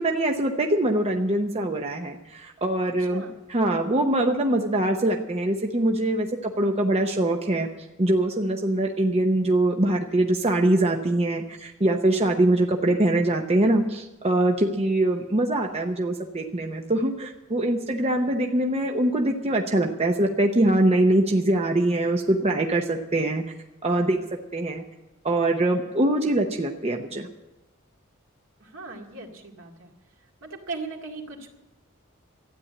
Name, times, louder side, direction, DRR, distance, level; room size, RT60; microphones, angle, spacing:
voice 1, 0.0-3.2 3.5-7.7 8.0-23.5 23.8-24.2 24.5-24.8 25.2-27.3, right 1 dB, 30° right, 2 dB, 0.8 m, -23 dB
voice 2, 3.0-3.3 28.6-29.9 30.4-31.5, right 3 dB, 75° right, 1 dB, 2.2 m, -38 dB
13.0 x 9.3 x 8.6 m, 1.0 s
head